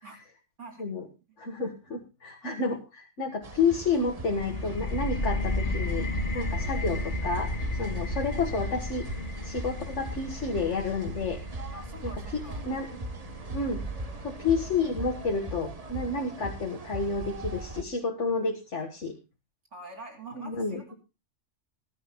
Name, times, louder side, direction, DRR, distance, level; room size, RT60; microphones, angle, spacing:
voice 1, 1.4-6.1 6.3-7.5 7.8-9.0 9.4-11.4 12.0-12.1 12.6-12.9 13.5-13.8 14.2-19.2 20.3-20.8, left 4 dB, 75° left, 3 dB, 2.0 m, -30 dB
sound 1, 3.4-17.8, right 2 dB, 30° right, 1.2 m, -39 dB
sound 2, 4.4-15.8, left 2 dB, 45° left, 1.3 m, -34 dB
voice 2, 11.7-12.7 19.7-21.0, right 2 dB, 80° right, 2 dB, 3.0 m, -45 dB
20.5 x 12.0 x 2.3 m, 0.28 s
omnidirectional pair, 1.2 m